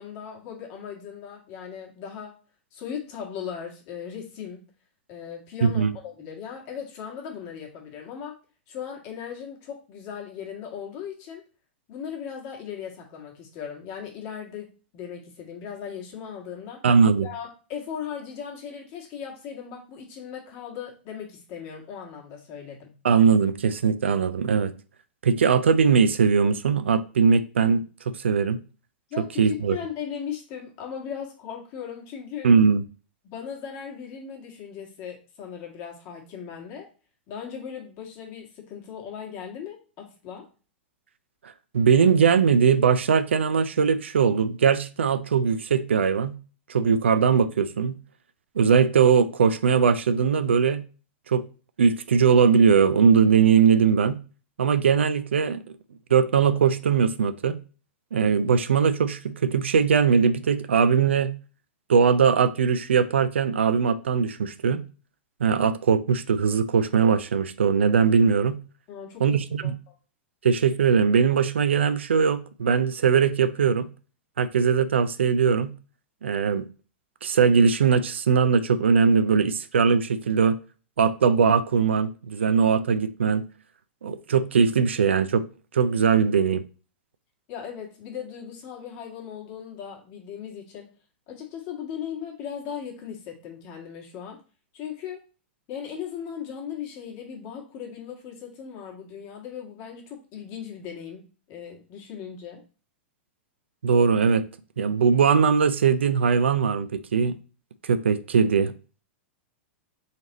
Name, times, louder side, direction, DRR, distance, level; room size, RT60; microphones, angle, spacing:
voice 1, 0.0-2.4 2.7-4.6 5.1-8.4 8.7-11.4 11.9-16.8 17.2-22.9 29.1-32.5 33.2-36.9 37.3-40.5 68.9-69.9 87.5-90.9 91.3-94.4 94.7-95.2 95.7-102.6, left 8 dB, 45° left, 1.7 m, -38 dB
voice 2, 5.6-5.9 16.8-17.3 23.0-24.7 25.2-28.6 29.2-29.8 32.4-32.8 41.7-46.4 46.7-48.0 48.6-50.8 51.3-51.4 51.8-54.2 54.6-55.6 56.1-57.6 58.1-61.3 61.9-64.8 65.4-68.6 69.2-69.7 70.4-73.9 74.4-75.7 76.2-76.6 77.2-80.6 81.0-83.4 84.0-85.4 85.7-86.6 103.8-104.4 104.8-107.4 107.8-108.7, right 6 dB, 85° right, 0.4 m, -20 dB
4.0 x 3.3 x 4.0 m
hypercardioid pair, 110°, 6 cm